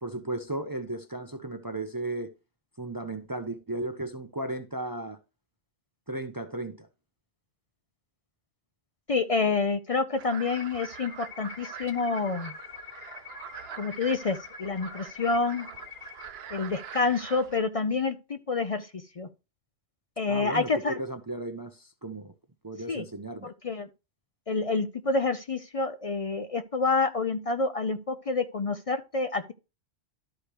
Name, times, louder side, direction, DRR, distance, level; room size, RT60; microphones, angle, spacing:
voice 1, 0.0-2.3 2.8-5.2 6.1-6.9 20.3-22.3 22.6-23.5, right 2 dB, 25° right, 0.5 m, -35 dB
voice 2, 9.1-12.5 13.8-15.7 16.5-19.3 20.2-21.0 22.9-23.0 23.4-23.9 24.5-29.5, left 4 dB, 50° left, 0.4 m, -28 dB
sound 1, 10.2-17.6, right 8 dB, 65° right, 0.9 m, -44 dB
sound 2, 10.4-16.2, left 7 dB, 80° left, 1.1 m, -45 dB
12.5 x 4.9 x 3.0 m
omnidirectional pair, 1.2 m